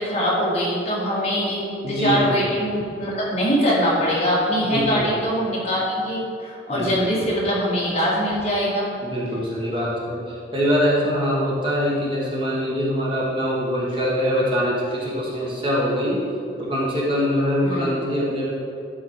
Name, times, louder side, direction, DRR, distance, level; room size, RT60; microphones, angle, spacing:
voice 1, 0.0-8.9 17.6-18.0, equal, 35° left, -7 dB, 2.2 m, -23 dB
voice 2, 1.8-2.5 4.7-5.1 6.7-6.9 9.0-16.2 16.6-18.5, equal, 30° right, -5 dB, 1.5 m, -23 dB
12.5 x 4.3 x 4.8 m, 2.5 s
head